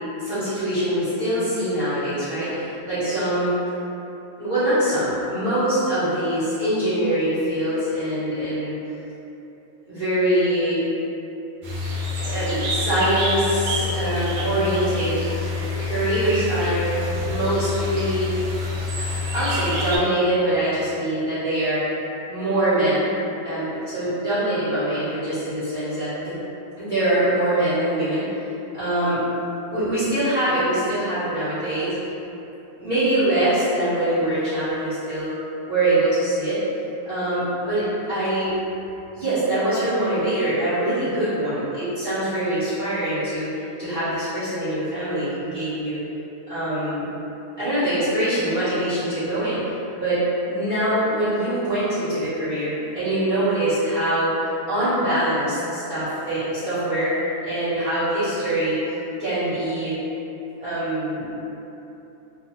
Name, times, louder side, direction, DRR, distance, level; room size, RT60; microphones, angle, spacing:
voice 1, 0.2-3.5 4.4-8.8 9.9-10.8 12.2-15.2 15.9-16.9 17.2-18.3 19.3-21.8 22.3-23.1 23.4-26.3 26.8-28.2 28.7-29.2 29.7-32.1 32.8-35.3 35.7-36.6 37.0-38.5 39.1-46.0 46.5-47.0 47.6-49.6 49.9-50.2 50.5-54.3 54.6-57.1 57.4-58.8 59.2-59.9 60.6-61.3, right 1 dB, 40° right, -17 dB, 1.0 m, -23 dB
sound 1, 11.6-20.0, left 3 dB, 75° right, 1.0 m, -27 dB
2.5 x 2.4 x 2.8 m, 3.0 s
omnidirectional pair, 1.5 m